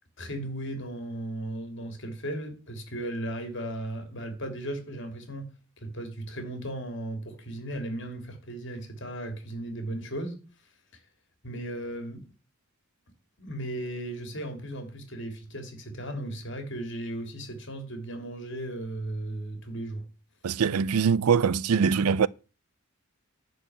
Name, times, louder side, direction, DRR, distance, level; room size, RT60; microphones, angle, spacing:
voice 1, 0.2-5.5 5.8-10.4 10.9-11.0 11.4-12.3 13.4-20.0, right 1 dB, 55° left, 3.2 m, -36 dB
voice 2, 20.4-22.3, right 6 dB, 90° right, 0.5 m, -23 dB
11.0 x 4.9 x 8.1 m
head